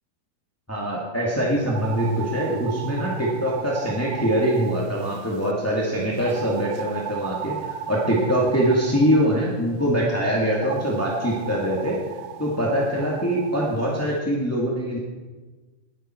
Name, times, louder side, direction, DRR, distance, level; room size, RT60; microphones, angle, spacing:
voice 1, 0.7-12.0 12.4-15.0, equal, 5° left, -4 dB, 1.2 m, -23 dB
sound 1, 1.6-5.5 6.2-9.5 10.5-13.8, right 11 dB, 80° right, 2.3 m, -36 dB
20.0 x 11.0 x 4.5 m, 1.3 s
omnidirectional pair, 4.3 m